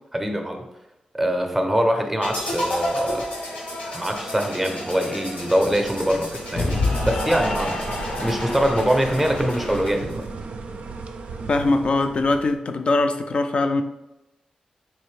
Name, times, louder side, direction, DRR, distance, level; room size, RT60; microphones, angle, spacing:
voice 1, 0.1-0.7 1.1-3.3 3.9-7.8 8.2-10.2, equal, 10° right, 4 dB, 0.6 m, -23 dB
sound 1, 2.2-10.2, left 1 dB, 90° left, 1.2 m, -33 dB
Cheering / Applause, 2.3-10.0, left 2 dB, 75° left, 0.7 m, -31 dB
sound 2, 4.0-12.6, right 4 dB, 75° right, 0.4 m, -36 dB
voice 2, 11.5-13.8, left 2 dB, 50° left, 7 dB, 0.4 m, -21 dB
4.2 x 2.6 x 3.2 m, 0.96 s
cardioid pair, 90°, 2 cm